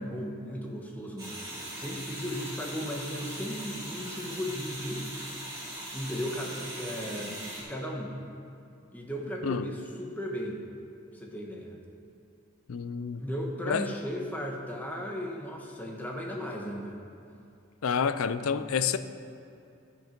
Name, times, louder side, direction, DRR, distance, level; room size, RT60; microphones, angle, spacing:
voice 1, 0.0-1.4 1.8-5.0 5.9-7.4 7.7-8.1 8.9-10.6 11.1-11.8 13.2-17.0, equal, 10° left, 1.2 m, -36 dB
sound 1, 1.2-7.6, right 1 dB, 15° right, 3.0 m, -40 dB
voice 2, 12.7-13.2 13.7-13.9 17.8-19.0, left 6 dB, 85° left, 0.5 m, -28 dB
14.5 x 6.1 x 5.2 m
head